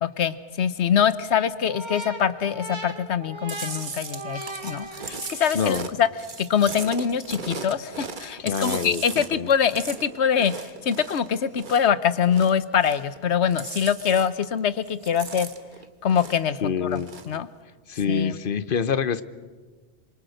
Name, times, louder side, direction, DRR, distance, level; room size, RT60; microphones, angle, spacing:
voice 1, 0.0-6.1 6.4-15.5 16.0-17.0 17.3-17.5 18.1-18.4, left 8 dB, 90° left, 14 dB, 1.2 m, -24 dB
sound 1, 1.7-5.6, right 1 dB, 25° right, 2.1 m, -38 dB
Chewing mastication, 3.5-11.9 12.2-13.2 13.4-14.6 14.9-16.5 16.9-17.4, right 4 dB, 50° right, 1.4 m, -37 dB
voice 2, 5.5-5.9 8.5-9.5 16.6-17.1 17.9-19.2, left 6 dB, 55° left, 14 dB, 1.0 m, -26 dB
26.5 x 24.0 x 6.5 m, 1.4 s
omnidirectional pair, 1.1 m